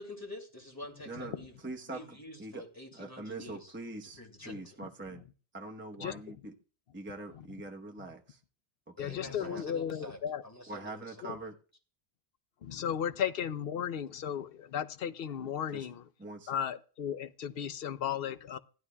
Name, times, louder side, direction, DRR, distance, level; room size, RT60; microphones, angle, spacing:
voice 1, 0.0-1.5 1.9-3.7 4.2-4.6 9.0-11.1, left 1 dB, 15° left, 2.5 m, -46 dB
voice 2, 1.0-2.6 2.9-5.2 5.5-6.5 6.9-8.4 8.9-9.6 10.7-11.6 15.7-15.9 16.2-16.6, right 2 dB, 10° right, 0.9 m, -44 dB
voice 3, 9.0-10.4 11.2-11.4 12.6-16.0 16.5-18.6, left 9 dB, 60° left, 0.8 m, -35 dB
16.0 x 12.0 x 2.3 m
omnidirectional pair, 1.2 m